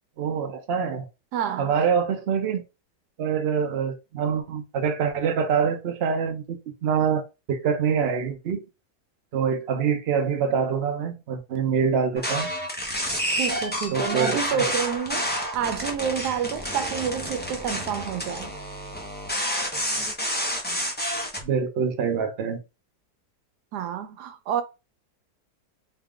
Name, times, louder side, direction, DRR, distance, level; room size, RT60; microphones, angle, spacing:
voice 1, 0.2-1.1 1.6-2.6 3.2-6.6 6.8-8.6 9.3-12.5 13.9-14.7 21.4-22.6, right 6 dB, 55° right, 0.7 m, -25 dB
voice 2, 1.3-1.7 13.3-18.5 23.7-24.6, right 8 dB, 85° right, 1.2 m, -29 dB
sound 1, 12.2-21.4, equal, 15° left, 0.3 m, -29 dB
4.1 x 2.3 x 3.6 m
omnidirectional pair, 1.7 m